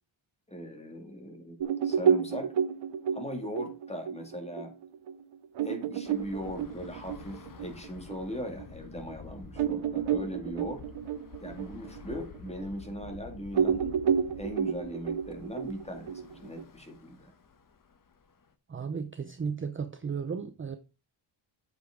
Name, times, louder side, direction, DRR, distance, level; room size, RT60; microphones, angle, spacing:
voice 1, 0.5-2.5 3.1-4.7 5.6-10.8 11.4-14.0 14.4-17.3, equal, 15° left, 2.2 m, -39 dB
sound 1, 1.6-8.7 9.1-9.2 9.6-13.2 13.5-16.6, right 7 dB, 70° right, 0.8 m, -30 dB
Bus / Traffic noise roadway noise, 6.1-18.5, left 6 dB, 40° left, 1.1 m, -50 dB
voice 2, 18.7-20.8, right 6 dB, 25° right, 0.6 m, -34 dB
8.1 x 8.0 x 3.7 m
wide cardioid pair, 150°, 48 cm